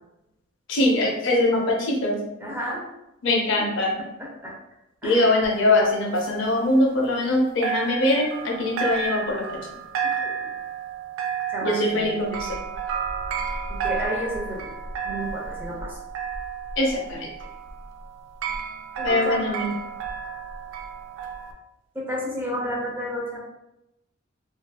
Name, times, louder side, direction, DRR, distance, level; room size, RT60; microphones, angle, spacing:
voice 1, 0.7-2.2 3.2-4.0 5.0-9.6 11.6-12.6 16.8-17.3 19.0-19.7, left 1 dB, 65° left, 0 dB, 0.6 m, -22 dB
voice 2, 2.4-2.8 3.6-3.7 4.2-4.5 5.0-5.3 10.2-10.3 11.5-12.1 13.7-14.7 15.0-16.0 19.0-19.6 21.9-23.4, equal, 10° right, -4 dB, 0.6 m, -31 dB
sound 1, 5.4-7.4 7.6-21.5, right 6 dB, 85° right, 0.4 m, -32 dB
2.8 x 2.5 x 2.2 m, 0.91 s
head